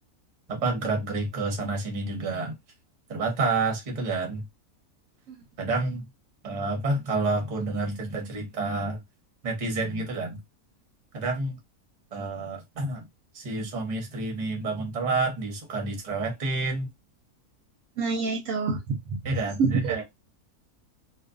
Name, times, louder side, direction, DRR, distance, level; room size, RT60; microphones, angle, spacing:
voice 1, 0.5-2.6 3.1-4.4 5.6-6.1 6.4-9.0 9.4-10.4 11.1-11.6 12.1-13.1 13.3-16.9 19.2-20.0, right 3 dB, 40° right, 0.7 m, -29 dB
voice 2, 18.0-19.2 19.6-20.0, right 4 dB, 70° right, 0.9 m, -27 dB
2.4 x 2.3 x 2.4 m
omnidirectional pair, 1.6 m